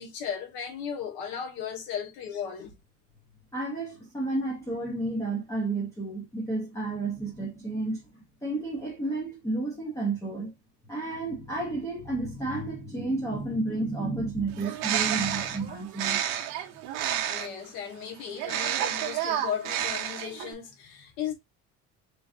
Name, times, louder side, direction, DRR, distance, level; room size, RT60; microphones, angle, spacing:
voice 1, 0.0-2.7 17.3-21.3, left 8 dB, 80° left, 1.3 m, -36 dB
voice 2, 3.5-10.5 10.9-16.2, right 2 dB, 10° left, 0.7 m, -31 dB
Bird, 14.5-17.7 18.4-20.5, right 10 dB, 70° right, 0.7 m, -30 dB
3.3 x 3.1 x 2.5 m
cardioid pair, 180°, 34 cm